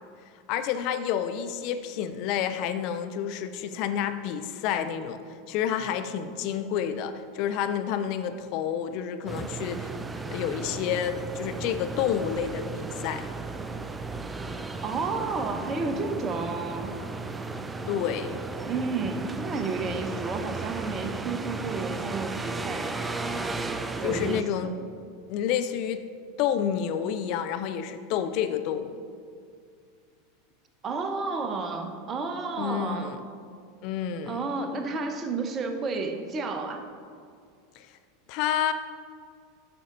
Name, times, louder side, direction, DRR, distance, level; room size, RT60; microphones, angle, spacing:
voice 1, 0.5-5.2 5.5-9.9 10.3-13.2 17.9-18.4 24.0-24.7 25.3-26.0 26.4-29.0 32.6-33.2 33.8-34.4 37.8-37.9 38.3-38.7, left 9 dB, 50° left, 10 dB, 0.4 m, -29 dB
sound 1, 9.3-24.4, right 3 dB, 15° right, 0.4 m, -35 dB
voice 2, 14.8-17.0 18.7-22.9 24.0-24.7 30.8-33.1 34.3-36.8, right 4 dB, 30° right, 6 dB, 0.8 m, -31 dB
8.8 x 6.4 x 3.8 m, 2.2 s
figure-of-eight pair, 85°, 0 cm